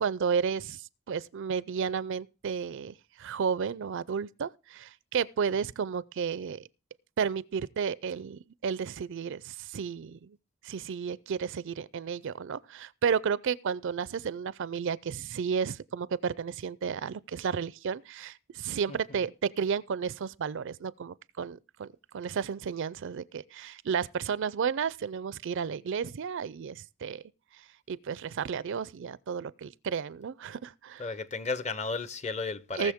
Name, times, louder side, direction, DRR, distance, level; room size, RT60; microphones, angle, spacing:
voice 1, 0.0-6.7 7.2-10.4 10.6-21.9 22.1-27.2 27.9-31.1 32.8-32.9, right 6 dB, 60° right, 0.4 m, -32 dB
voice 2, 31.0-32.9, left 4 dB, 35° left, 0.7 m, -33 dB
19.0 x 6.6 x 3.6 m
head